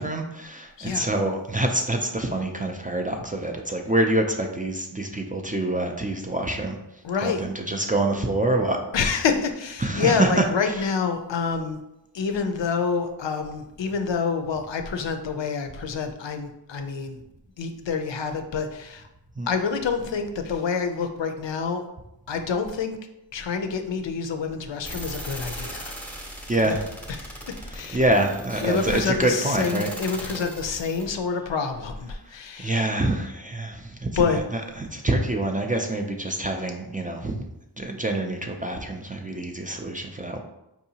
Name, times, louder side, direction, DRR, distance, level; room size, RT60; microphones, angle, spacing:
voice 1, 0.0-6.8 7.2-8.8 9.8-10.4 19.4-19.5 26.5-26.8 27.9-29.9 32.6-34.4 34.8-37.4 37.8-40.4, right 1 dB, 20° right, 2 dB, 0.3 m, -26 dB
voice 2, 0.8-1.1 7.0-7.4 8.9-11.8 12.1-17.2 17.6-19.1 19.5-21.8 22.3-23.0 23.3-25.9 26.7-26.8 27.1-27.3 27.7-28.0 28.6-32.9 34.2-34.4, left 5 dB, 75° left, 6 dB, 0.5 m, -27 dB
sound 1, 24.8-31.0, equal, 5° left, 0.7 m, -38 dB
4.5 x 2.7 x 2.8 m, 0.89 s
wide cardioid pair, 55°, 45 cm